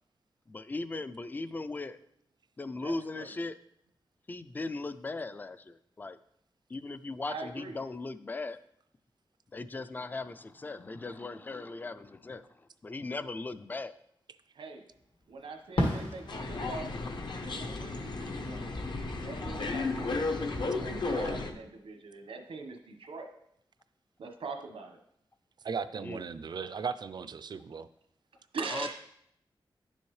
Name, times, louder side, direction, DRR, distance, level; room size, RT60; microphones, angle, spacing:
voice 1, 0.5-2.0 2.6-3.6 4.3-6.2 6.7-8.6 9.5-14.0 26.0-26.3 28.7-28.9, left 3 dB, 20° left, 13 dB, 0.3 m, -38 dB
voice 2, 2.8-3.3 7.3-7.8 14.5-14.8 15.3-16.9 17.4-18.7 19.2-23.3 24.2-25.0 28.5-28.9, right 4 dB, 90° right, 5 dB, 1.1 m, -42 dB
Fireworks, 15.8-18.4 18.7-20.7, left 1 dB, 75° left, 1.8 m, -37 dB
sound 1, 16.3-21.5, left 3 dB, 60° left, 0.8 m, -34 dB
voice 3, 25.6-27.9, right 6 dB, 55° right, 12 dB, 0.4 m, -37 dB
10.0 x 7.0 x 3.2 m, 0.72 s
wide cardioid pair, 165°, 9 cm